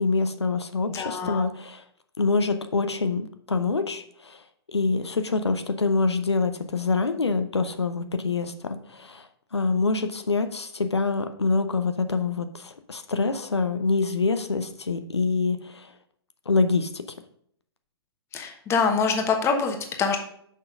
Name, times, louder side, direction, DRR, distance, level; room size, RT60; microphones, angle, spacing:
voice 1, 0.0-1.8 2.2-4.4 4.7-15.9 16.5-16.9, left 4 dB, 80° left, 8 dB, 0.7 m, -25 dB
voice 2, 0.9-1.4 18.3-20.2, left 5 dB, 20° left, 4 dB, 1.1 m, -25 dB
6.4 x 5.5 x 5.3 m, 0.67 s
figure-of-eight pair, 115°, 14 cm